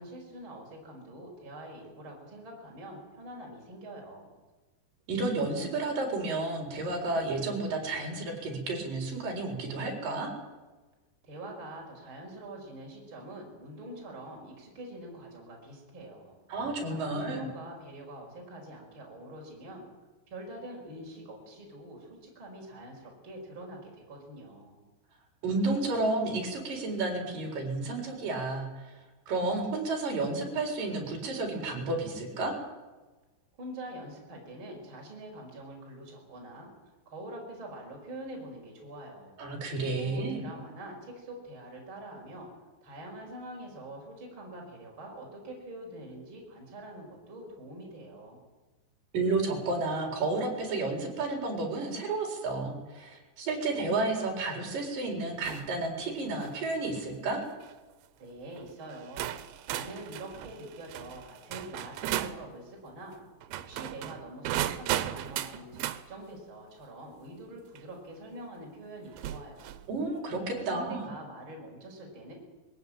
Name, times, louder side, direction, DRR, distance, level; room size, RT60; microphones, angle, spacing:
voice 1, 0.0-4.3 11.2-16.3 16.9-19.8 20.3-24.8 33.6-36.7 37.1-39.4 39.9-42.5 42.8-48.4 58.2-59.3 59.7-63.2 63.6-69.8 70.5-72.3, right 1 dB, 25° right, -1 dB, 5.6 m, -45 dB
voice 2, 5.1-10.3 16.5-17.5 25.4-28.9 29.3-32.5 39.4-40.4 49.1-57.4 69.9-71.1, right 3 dB, 50° right, 1 dB, 5.8 m, -31 dB
sound 1, 55.5-55.8 56.3-56.6 57.4-57.7 58.6-58.7 59.2-62.4 63.4-66.0 67.8-67.9 69.1-69.9, right 12 dB, 90° right, 3.2 m, -35 dB
21.5 x 16.5 x 9.1 m, 1.2 s
omnidirectional pair, 5.2 m